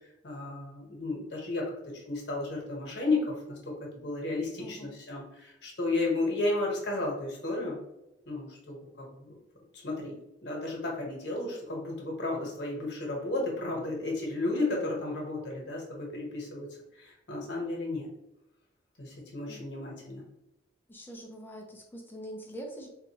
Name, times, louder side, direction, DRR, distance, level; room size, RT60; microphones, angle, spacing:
voice 1, 0.2-3.7 4.0-7.8 8.3-9.3 9.7-16.7 16.9-18.1 19.0-20.2, left 2 dB, 65° left, -2 dB, 1.1 m, -33 dB
voice 2, 4.6-4.9 19.5-19.6 20.9-22.9, right 1 dB, 10° left, 1 dB, 0.5 m, -43 dB
4.0 x 2.4 x 2.9 m, 0.91 s
head